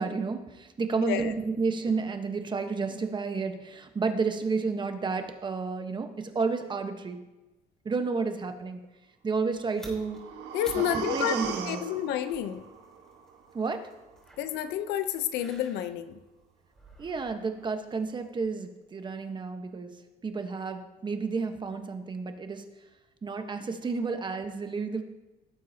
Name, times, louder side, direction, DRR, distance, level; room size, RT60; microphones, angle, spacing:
voice 1, 0.0-7.2 7.8-8.8 9.2-10.2 10.9-11.8 13.5-13.9 17.0-19.9 20.2-22.6 23.2-25.0, right 4 dB, 25° right, 1.1 m, -31 dB
voice 2, 1.0-1.3 10.5-11.4 11.7-12.6 14.4-16.2, left 10 dB, 85° left, 0.7 m, -30 dB
sound 1, 9.4-18.6, right 1 dB, 5° left, 3.9 m, -54 dB
sound 2, 9.8-13.8 14.1-14.2, right 6 dB, 90° right, 1.3 m, -37 dB
17.5 x 7.6 x 2.8 m
cardioid pair, 110°, 17 cm